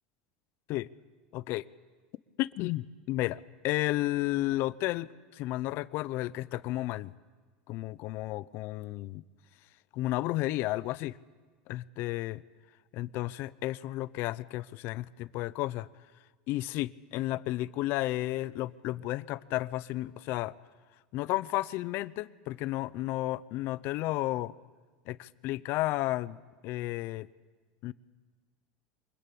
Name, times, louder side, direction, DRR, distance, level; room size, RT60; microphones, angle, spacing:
voice 1, 1.3-1.6 2.4-5.1 5.3-7.1 7.7-9.2 9.9-11.2 11.7-12.4 12.9-15.9 16.5-20.5 21.1-24.5 25.1-26.4 26.6-27.3 27.8-27.9, left 17 dB, 55° left, 18 dB, 0.7 m, -32 dB
25.0 x 20.5 x 8.5 m, 1.4 s
supercardioid pair, 120°, 4 cm